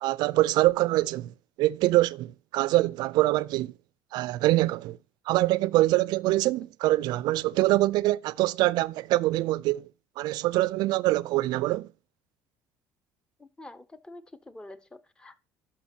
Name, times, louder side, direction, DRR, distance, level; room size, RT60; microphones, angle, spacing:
voice 1, 0.0-1.3 1.6-3.7 4.1-5.0 5.3-9.9 10.2-11.9, right 17 dB, 75° right, 0.4 m, -24 dB
voice 2, 13.4-15.4, left 1 dB, 10° left, 0.6 m, -47 dB
11.5 x 5.8 x 2.7 m
cardioid pair, 125°, 7 cm